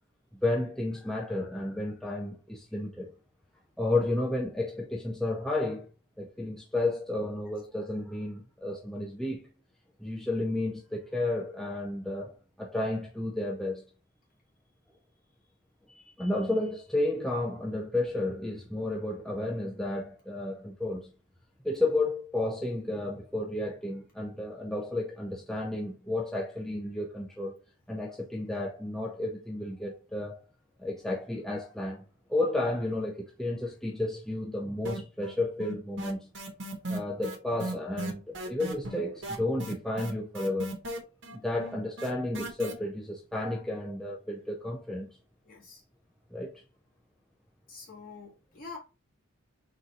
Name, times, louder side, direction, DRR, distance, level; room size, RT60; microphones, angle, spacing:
voice 1, 0.4-3.1 3.8-5.9 6.2-9.4 10.0-13.8 15.9-21.1 21.6-27.6 27.9-30.4 30.8-32.0 32.3-36.3 36.9-40.8 41.4-45.1 46.3-46.6, left 2 dB, ahead, 0.4 m, -32 dB
sound 1, 34.8-35.3 35.6-42.7, right 1 dB, 60° right, 1.1 m, -37 dB
voice 2, 45.4-45.8 47.7-48.8, left 4 dB, 45° left, 2.0 m, -46 dB
4.0 x 2.6 x 4.4 m
head